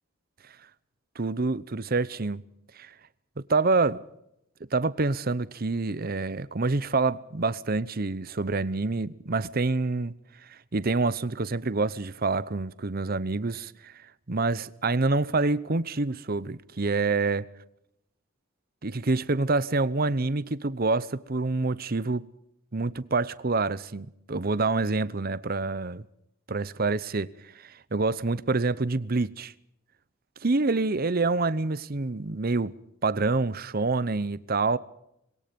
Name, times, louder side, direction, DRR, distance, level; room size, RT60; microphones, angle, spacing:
voice 1, 1.2-2.4 2.8-2.9 3.5-4.0 4.7-10.1 10.7-13.9 14.3-17.5 18.8-22.3 22.7-26.0 26.5-27.3 27.6-29.5 30.4-34.8, right 3 dB, 45° right, 0.8 m, -27 dB
26.0 x 22.0 x 5.3 m
head